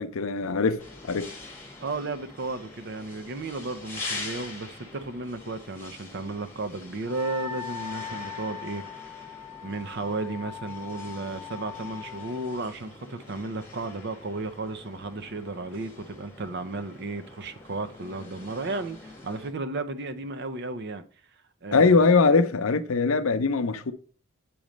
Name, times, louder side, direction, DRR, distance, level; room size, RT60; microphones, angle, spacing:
voice 1, 0.0-1.3 21.7-23.9, left 4 dB, 70° left, 0.6 m, -22 dB
sound 1, 0.8-19.5, left 3 dB, 10° left, 1.5 m, -44 dB
voice 2, 1.8-9.4 9.6-21.0 21.6-22.1, right 3 dB, 50° right, 0.6 m, -34 dB
Wind instrument woodwind instrument, 7.1-12.6, left 8 dB, 65° right, 0.9 m, -40 dB
8.5 x 3.1 x 5.1 m
head